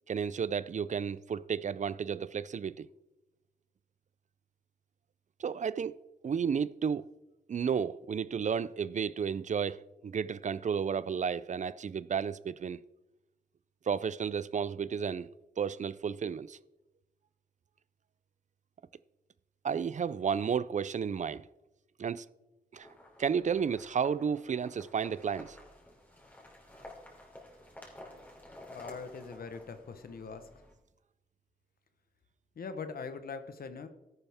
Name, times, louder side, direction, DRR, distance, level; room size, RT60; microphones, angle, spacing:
voice 1, 0.1-2.9 5.4-7.0 7.5-12.8 13.9-15.3 15.6-16.6 19.6-21.5 22.0-22.3 22.7-22.9 23.2-25.6, right 7 dB, 55° right, 0.4 m, -32 dB
sound 1, 22.7-30.7, left 1 dB, 10° left, 3.3 m, -52 dB
voice 2, 28.7-30.5 32.5-33.9, left 5 dB, 85° left, 1.1 m, -42 dB
13.5 x 11.0 x 3.5 m
wide cardioid pair, 85°, 15 cm